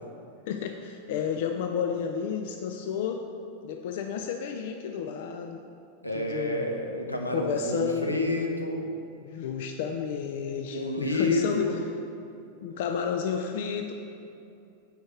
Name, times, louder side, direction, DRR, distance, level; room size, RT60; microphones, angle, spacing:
voice 1, 0.5-3.2 3.6-5.6 6.1-6.6 7.3-8.1 9.2-11.7 12.6-13.9, left 7 dB, 50° left, 4 dB, 0.4 m, -31 dB
voice 2, 6.0-8.9 10.7-11.7, left 1 dB, 85° left, 1 dB, 0.7 m, -29 dB
5.1 x 4.9 x 6.2 m, 2.6 s
figure-of-eight pair, 90°, 0 cm